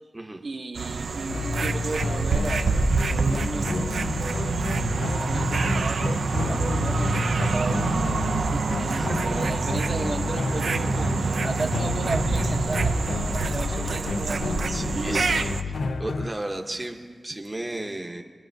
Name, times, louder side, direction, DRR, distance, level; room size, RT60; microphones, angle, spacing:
voice 1, 0.4-4.5 4.9-15.4, right 3 dB, 55° right, 3 dB, 0.8 m, -35 dB
sound 1, 0.8-15.6, right 4 dB, 85° right, 0.4 m, -26 dB
sound 2, 1.3-16.3, left 4 dB, 80° left, 0.3 m, -30 dB
voice 2, 14.7-15.5 16.0-18.2, right 1 dB, 20° right, 3 dB, 0.7 m, -34 dB
22.5 x 10.0 x 2.6 m, 1.5 s
wide cardioid pair, 105°, 0 cm